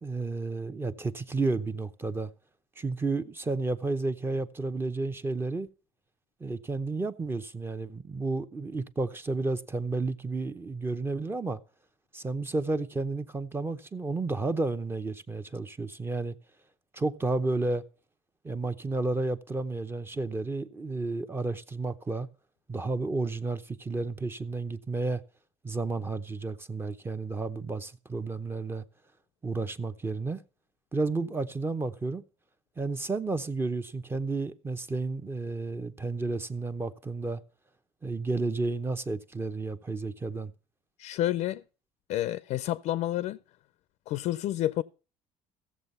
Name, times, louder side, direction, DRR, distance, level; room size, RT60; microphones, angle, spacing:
voice 1, 0.0-2.3 2.8-5.7 6.4-11.6 12.1-16.3 16.9-17.8 18.4-22.3 22.7-25.2 25.6-28.8 29.4-30.4 30.9-32.2 32.8-37.4 38.0-40.5, right 3 dB, 20° right, 0.8 m, -31 dB
voice 2, 41.0-41.6 42.1-43.4 44.1-44.8, left 13 dB, 70° left, 0.5 m, -29 dB
15.0 x 7.3 x 5.4 m
cardioid pair, 105°, 12 cm